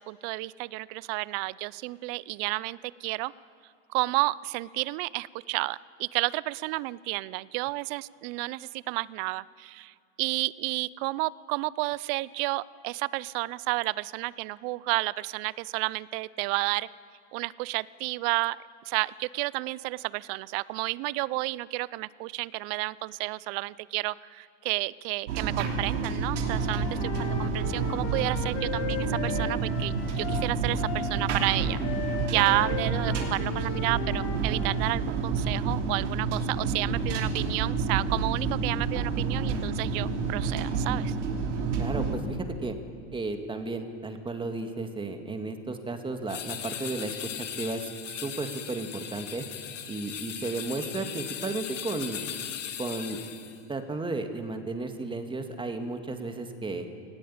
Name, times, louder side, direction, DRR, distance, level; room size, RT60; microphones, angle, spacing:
voice 1, 0.0-3.3 3.9-9.9 10.2-16.9 17.3-18.6 18.9-31.8 32.3-41.1, right 21 dB, 50° right, 21 dB, 0.6 m, -31 dB
sound 1, 25.3-42.1, right 4 dB, 80° right, 3.3 m, -29 dB
Wind instrument woodwind instrument, 26.4-34.9, left 8 dB, 60° left, 2.3 m, -38 dB
voice 2, 41.8-42.8 43.1-49.5 49.9-52.2 52.8-53.2 53.7-56.9, right 3 dB, 15° right, 6 dB, 2.0 m, -34 dB
sound 2, 46.3-53.6, left 10 dB, 85° left, 1.6 m, -38 dB
18.5 x 16.0 x 8.8 m, 2.2 s
hypercardioid pair, 105°, 36 cm